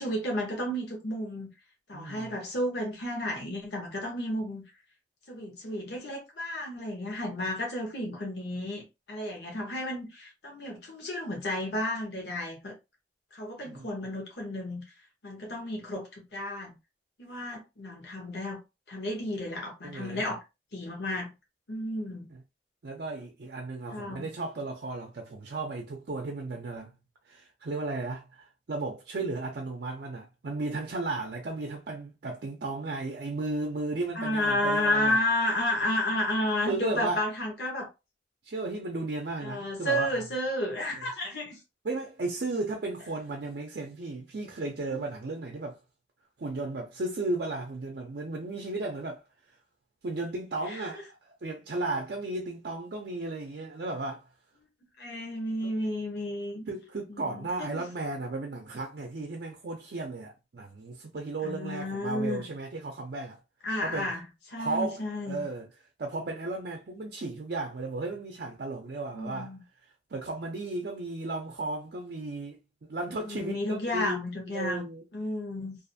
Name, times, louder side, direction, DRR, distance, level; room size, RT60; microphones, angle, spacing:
voice 1, 0.0-1.5 1.9-4.6 5.3-12.7 13.3-14.8 15.2-16.8 17.2-18.6 18.9-20.4 20.7-21.3 21.7-22.3 23.9-24.3 34.1-37.9 39.4-41.6 44.7-45.0 50.6-51.0 55.0-56.7 57.1-57.8 61.4-62.4 63.6-64.2 64.5-65.4 69.1-69.6 73.2-74.9 75.1-75.8, left 1 dB, 70° left, 0.9 m, -32 dB
voice 2, 1.9-2.3 13.7-14.0 19.8-20.2 22.8-26.9 27.3-35.2 36.7-37.3 38.4-40.2 41.0-41.1 41.8-45.8 46.4-49.2 50.0-54.2 56.7-63.4 63.8-64.1 64.6-65.7 66.0-69.5 70.1-72.6 72.9-74.2 74.5-75.0, right 2 dB, 60° right, 0.5 m, -34 dB
2.5 x 2.4 x 2.6 m
head